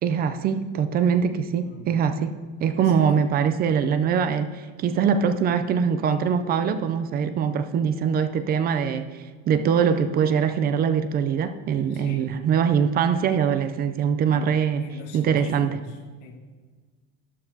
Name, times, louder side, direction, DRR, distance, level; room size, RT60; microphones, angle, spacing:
voice 1, 0.0-14.8 15.1-15.8, right 7 dB, 30° right, 10 dB, 0.4 m, -23 dB
voice 2, 2.8-3.1 11.9-12.3 14.3-16.4, left 4 dB, 90° left, 2 dB, 1.5 m, -42 dB
12.5 x 11.5 x 2.7 m, 1.5 s
supercardioid pair, 145°, 35 cm